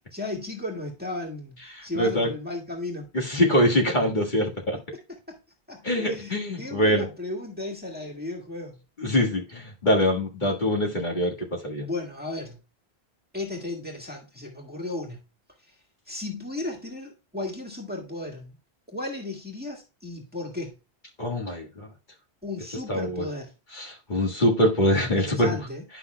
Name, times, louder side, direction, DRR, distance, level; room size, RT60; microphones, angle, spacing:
voice 1, 0.1-3.1 5.3-5.4 5.7-8.8 11.8-12.6 13.3-15.2 16.1-18.5 18.9-20.7 22.4-23.5 25.2-25.8, left 2 dB, 10° right, 1.7 m, -35 dB
voice 2, 1.8-2.3 3.1-4.8 5.8-7.1 9.0-11.9 21.2-21.9 22.9-23.2 23.8-25.6, equal, 45° left, 1.8 m, -24 dB
11.5 x 5.8 x 2.2 m
omnidirectional pair, 1.1 m